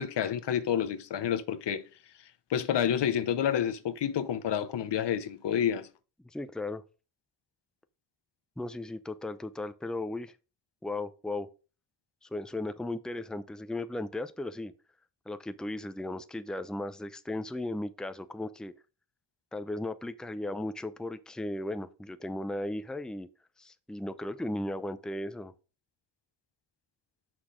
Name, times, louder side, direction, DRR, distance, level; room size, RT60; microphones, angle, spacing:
voice 1, 0.0-1.8 2.5-5.9, left 9 dB, 80° left, 0.9 m, -29 dB
voice 2, 6.2-6.8 8.6-10.3 10.8-11.5 12.2-14.7 15.3-18.7 19.5-23.3 23.6-25.5, left 1 dB, ahead, 0.6 m, -36 dB
6.1 x 6.1 x 5.0 m
cardioid pair, 75°, 42 cm